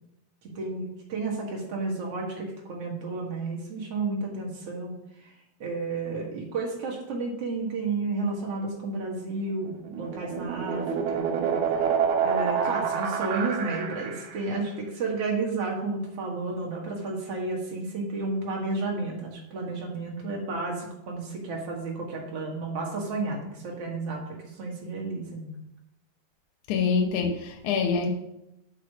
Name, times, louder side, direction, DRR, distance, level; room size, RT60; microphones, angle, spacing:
voice 1, 0.4-5.0 5.2-5.3 5.6-11.6 12.2-25.5, right 3 dB, 55° right, -1 dB, 1.8 m, -32 dB
sound 1, 9.7-14.5, right 6 dB, 75° right, 2.6 m, -28 dB
voice 2, 26.7-28.1, left 5 dB, 80° left, 2 dB, 1.7 m, -25 dB
6.5 x 5.9 x 6.2 m, 0.82 s
omnidirectional pair, 5.0 m